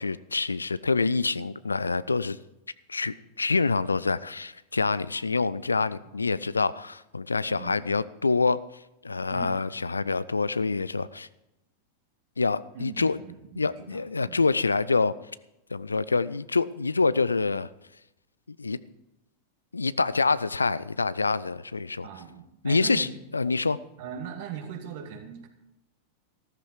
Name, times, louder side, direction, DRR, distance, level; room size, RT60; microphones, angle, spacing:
voice 1, 0.0-2.4 2.9-8.6 9.0-11.3 12.4-13.2 13.6-15.1 15.7-17.7 18.5-18.8 19.7-22.1 22.6-23.1 23.3-23.8, left 4 dB, 80° left, 18 dB, 0.5 m, -26 dB
voice 2, 6.0-6.5 7.5-8.1 9.3-9.7 12.7-14.4 22.0-23.1 24.0-25.5, right 7 dB, 50° right, 4 dB, 2.6 m, -41 dB
14.5 x 13.5 x 4.7 m, 0.89 s
figure-of-eight pair, 90°, 0 cm